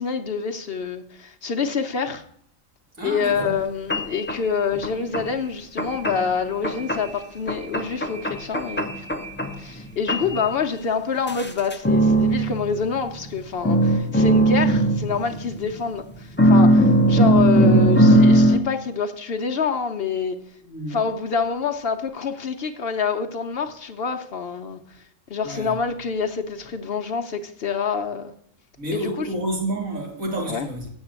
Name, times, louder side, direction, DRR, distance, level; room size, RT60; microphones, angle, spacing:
voice 1, 0.0-2.2 3.0-9.1 9.6-20.4 20.9-24.8 25.3-28.3 28.9-29.3 30.5-30.7, left 5 dB, 55° left, 0.9 m, -26 dB
voice 2, 3.0-3.6 10.2-10.3 20.6-21.0 25.4-25.8 28.8-30.9, right 1 dB, 80° right, 3.0 m, -30 dB
sound 1, 3.4-3.5 3.9-4.4 4.8-5.3 5.8-6.3 6.6-7.2 7.5-9.8 10.1-10.4 11.3-13.4 13.6-15.8 16.4-18.6, right 1 dB, 15° left, 0.4 m, -19 dB
7.5 x 7.2 x 8.0 m
omnidirectional pair, 1.4 m